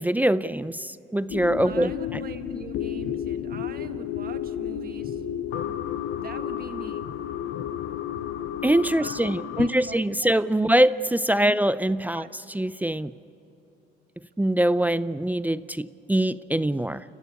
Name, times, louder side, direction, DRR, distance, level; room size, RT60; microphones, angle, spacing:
voice 1, 0.0-1.9 8.6-12.3 12.5-13.1 14.4-17.0, right 1 dB, 10° right, 15 dB, 0.5 m, -23 dB
sound 1, 1.3-9.7, left 10 dB, 80° left, 0.8 m, -32 dB
voice 2, 1.6-5.2 6.2-7.0 9.0-10.4 11.4-11.6 12.1-12.3, right 6 dB, 50° right, 8 dB, 1.5 m, -42 dB
29.5 x 14.5 x 8.5 m, 2.7 s
cardioid pair, 90°, 20 cm